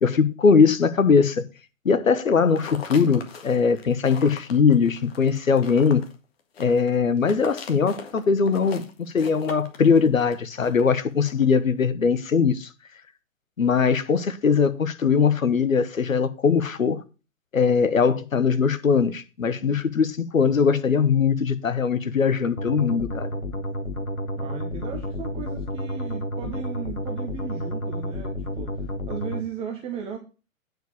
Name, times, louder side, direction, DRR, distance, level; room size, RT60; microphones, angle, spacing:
voice 1, 0.0-1.4 1.8-6.0 6.6-12.7 13.6-17.0 17.5-23.3, left 5 dB, 70° left, 1.2 m, -21 dB
sound 1, 2.4-11.5, left 5 dB, 45° left, 1.8 m, -41 dB
sound 2, 22.6-29.4, equal, 85° left, 1.5 m, -31 dB
voice 2, 24.4-30.2, right 7 dB, 15° right, 0.8 m, -36 dB
9.3 x 4.9 x 6.3 m
figure-of-eight pair, 120°, 41 cm